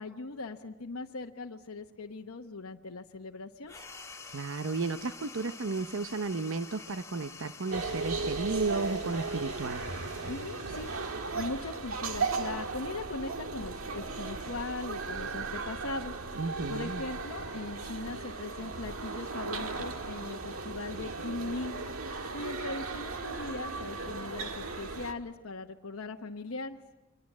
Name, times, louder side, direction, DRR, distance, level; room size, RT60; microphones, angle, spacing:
voice 1, 0.0-3.7 10.3-16.2 16.7-21.8 22.3-26.8, left 3 dB, 85° left, 2 dB, 1.0 m, -39 dB
sound 1, 3.7-12.5, left 4 dB, 15° left, 1.9 m, -49 dB
voice 2, 4.3-9.8 16.4-17.0, right 3 dB, 65° right, 11 dB, 0.8 m, -33 dB
sound 2, 7.7-25.1, right 4 dB, 80° right, 1.8 m, -36 dB
29.0 x 24.0 x 7.4 m, 1.1 s
head